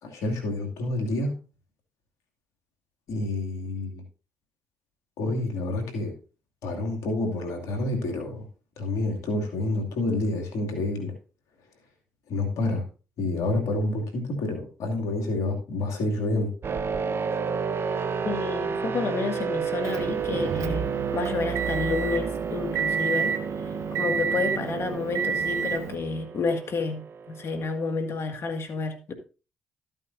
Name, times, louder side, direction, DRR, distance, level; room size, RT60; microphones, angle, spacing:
voice 1, 0.0-1.4 3.1-4.0 5.2-6.2 6.6-8.5 8.8-11.2 12.3-12.9 13.2-16.5, left 2 dB, 80° left, 2.5 m, -28 dB
sound 1, 16.6-28.0, right 6 dB, 50° right, 0.9 m, -32 dB
voice 2, 18.2-23.3 23.6-23.7 24.0-29.1, left 4 dB, 55° left, 2.0 m, -30 dB
Motor vehicle (road) / Engine, 19.8-26.0, right 6 dB, 70° right, 1.1 m, -29 dB
13.0 x 9.0 x 2.7 m
supercardioid pair, 55°, 5 cm